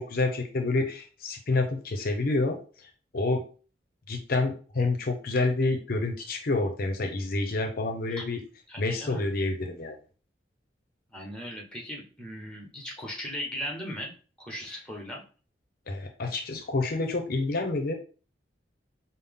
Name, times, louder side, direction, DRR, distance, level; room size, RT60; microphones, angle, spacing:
voice 1, 0.0-3.4 4.1-8.4 8.8-10.0 15.9-17.9, left 2 dB, 55° left, 6 dB, 0.6 m, -28 dB
voice 2, 8.7-9.3 11.1-14.1 14.4-15.2, equal, 5° left, 0 dB, 1.0 m, -38 dB
5.5 x 2.0 x 3.5 m, 0.38 s
head